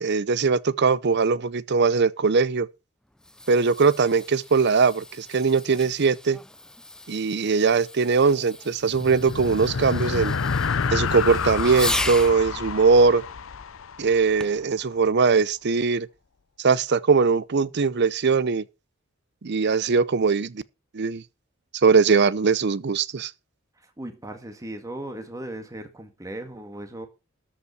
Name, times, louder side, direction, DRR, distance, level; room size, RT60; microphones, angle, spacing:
voice 1, 0.0-2.7 3.5-6.4 7.1-10.3 10.9-13.2 14.0-16.1 16.6-18.6 19.4-20.6 20.9-21.2 21.8-23.3, right 5 dB, 55° right, 0.6 m, -21 dB
Fireworks, 3.0-12.4 14.4-14.7 15.4-15.5, left 1 dB, 5° left, 0.5 m, -36 dB
sound 1, 8.8-14.5, left 5 dB, 70° left, 0.6 m, -29 dB
voice 2, 24.0-27.1, right 1 dB, 15° right, 1.7 m, -37 dB
13.0 x 5.5 x 6.3 m
head